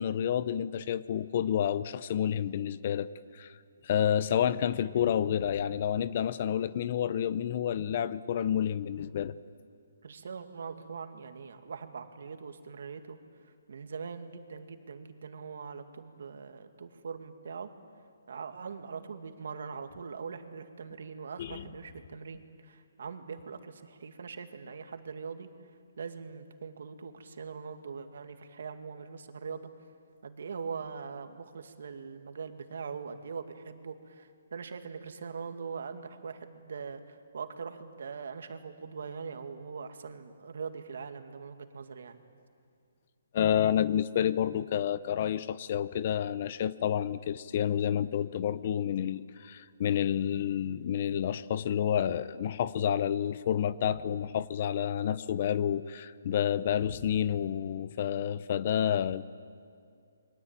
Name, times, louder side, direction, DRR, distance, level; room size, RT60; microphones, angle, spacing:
voice 1, 0.0-3.1 3.3-3.5 3.8-9.3 21.4-21.6 43.3-59.2, left 9 dB, 35° left, 16 dB, 0.7 m, -29 dB
voice 2, 10.0-13.2 13.4-17.7 18.3-25.5 26.0-29.7 30.2-42.2, right 5 dB, 60° right, 7 dB, 2.3 m, -42 dB
28.5 x 23.0 x 9.0 m, 2.3 s
hypercardioid pair, 170°, 0 cm